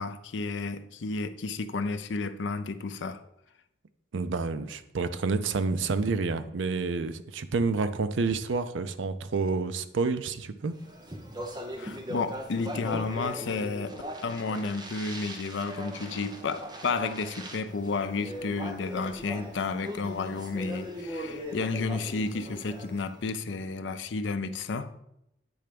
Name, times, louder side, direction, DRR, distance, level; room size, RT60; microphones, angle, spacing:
voice 1, 0.0-3.2 11.8-24.9, left 4 dB, 75° left, 0.5 m, -32 dB
voice 2, 4.1-10.8, right 4 dB, 85° right, 0.5 m, -29 dB
Speech, 10.8-23.2, equal, 20° right, 0.8 m, -40 dB
8.6 x 3.3 x 5.1 m
head